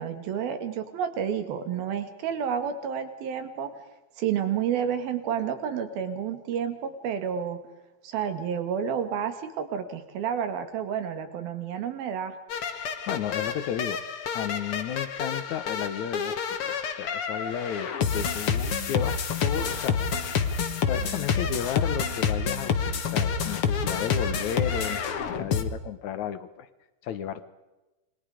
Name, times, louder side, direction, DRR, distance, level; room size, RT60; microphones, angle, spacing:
voice 1, 0.0-3.7 4.2-7.6 8.0-12.4, right 8 dB, 75° right, 8 dB, 3.8 m, -30 dB
sound 1, 12.5-25.6, left 6 dB, 50° left, 1.8 m, -28 dB
voice 2, 12.8-14.0 14.3-20.5 20.9-26.7 27.0-27.5, left 9 dB, 70° left, 12 dB, 1.9 m, -33 dB
28.5 x 22.0 x 5.0 m, 1.1 s
omnidirectional pair, 4.4 m